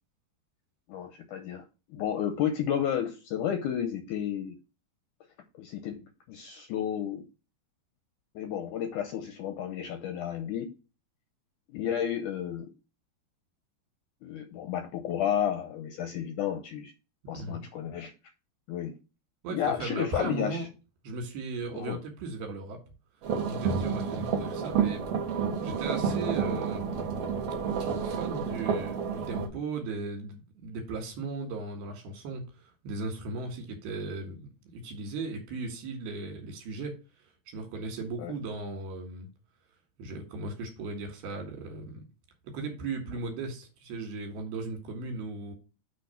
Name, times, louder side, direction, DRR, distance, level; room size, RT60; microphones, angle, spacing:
voice 1, 0.9-1.6 1.9-4.6 5.5-7.2 8.4-10.7 11.7-12.7 14.2-16.9 17.3-18.1 18.7-19.0 19.5-20.7 21.7-22.0 38.2-38.3, left 9 dB, 80° left, 1.8 m, -32 dB
voice 2, 17.3-17.6 19.4-20.7 21.0-22.8 23.4-25.1 25.6-27.3 28.0-37.0 37.5-39.3 40.0-42.0 42.4-45.5, right 3 dB, 85° right, 3.7 m, -37 dB
sound 1, 23.2-29.5, right 6 dB, 60° right, 1.7 m, -30 dB
7.6 x 3.5 x 5.6 m
omnidirectional pair, 4.3 m